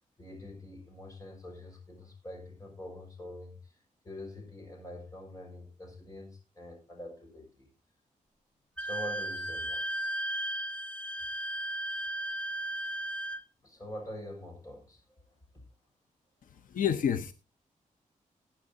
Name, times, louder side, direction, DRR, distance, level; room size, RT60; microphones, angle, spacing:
voice 1, 0.0-7.7 8.8-9.9 13.6-15.4, left 1 dB, 25° left, 1 dB, 5.6 m, -45 dB
Wind instrument woodwind instrument, 8.8-13.4, right 1 dB, 10° left, 0.7 m, -35 dB
voice 2, 16.5-17.3, left 8 dB, 80° left, 10 dB, 0.7 m, -29 dB
19.5 x 8.8 x 2.7 m, 0.29 s
wide cardioid pair, 170°, 14 cm